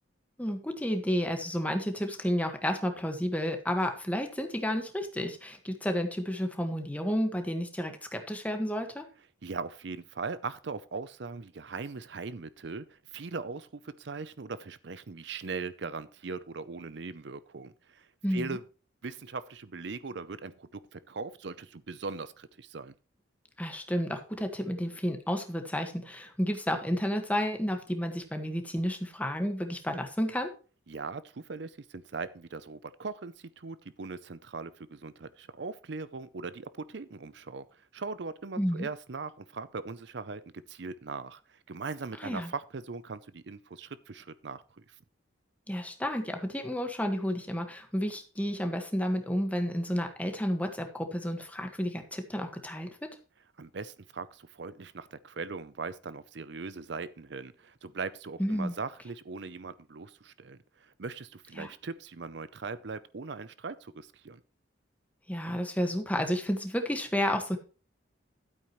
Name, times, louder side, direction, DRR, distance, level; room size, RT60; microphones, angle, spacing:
voice 1, 0.4-9.0 18.2-18.6 23.6-30.5 38.6-38.9 42.2-42.5 45.7-53.1 58.4-58.7 61.6-61.7 65.3-67.6, equal, 10° left, 5 dB, 1.6 m, -31 dB
voice 2, 9.4-18.6 19.0-22.9 30.9-45.0 53.6-64.4, right 4 dB, 65° right, 15 dB, 0.6 m, -40 dB
12.5 x 8.7 x 3.1 m, 0.35 s
head